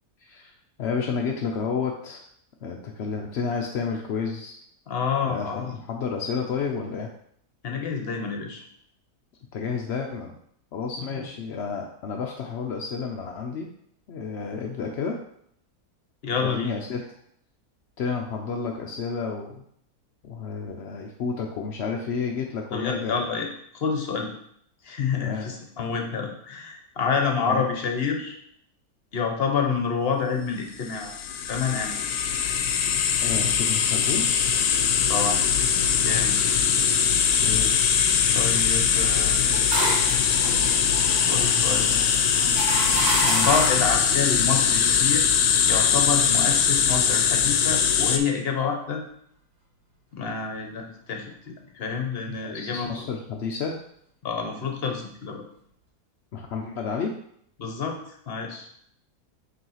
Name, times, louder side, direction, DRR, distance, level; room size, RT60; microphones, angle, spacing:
voice 1, 0.2-0.5 0.8-2.2 2.6-4.6 5.2-7.1 9.5-10.4 10.7-13.7 14.1-15.2 16.4-17.0 18.0-19.6 20.2-23.3 25.2-25.5 27.5-27.6 33.2-34.2 37.4-37.8 43.2-43.5 52.3-53.8 56.3-57.1, left 5 dB, 60° left, 1 dB, 0.7 m, -30 dB
voice 2, 4.9-5.8 7.6-8.6 11.0-11.2 16.2-16.7 22.7-23.5 23.7-24.3 24.8-28.4 29.1-31.1 31.4-32.0 35.0-35.5 35.9-36.4 38.3-39.8 41.1-42.0 43.4-45.4 45.6-49.0 50.1-53.1 54.2-55.4 57.6-58.0 58.3-58.7, left 5 dB, 45° left, 3 dB, 1.0 m, -28 dB
sound 1, 30.9-48.2, left 7 dB, 80° left, 1.1 m, -22 dB
sound 2, 39.2-43.9, right 2 dB, 70° right, 1.8 m, -29 dB
5.5 x 3.1 x 5.6 m, 0.68 s
omnidirectional pair, 1.6 m